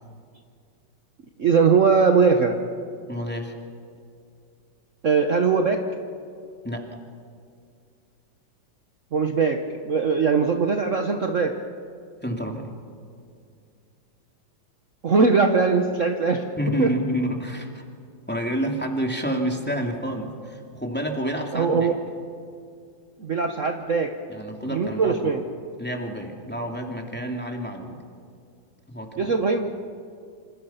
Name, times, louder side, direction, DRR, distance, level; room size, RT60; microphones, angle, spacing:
voice 1, 1.4-2.6 5.0-5.8 9.1-9.6 9.8-11.5 15.0-16.4 16.8-16.9 21.5-21.9 23.2-24.1 24.7-25.4 29.2-29.7, right 5 dB, 45° right, 5 dB, 1.4 m, -20 dB
voice 2, 3.1-3.5 6.6-7.0 12.2-12.7 16.6-17.8 18.3-22.0 24.3-25.4 25.8-28.0 28.9-29.3, equal, 5° left, 1 dB, 2.7 m, -29 dB
27.5 x 27.0 x 5.8 m, 2.3 s
omnidirectional pair, 2.0 m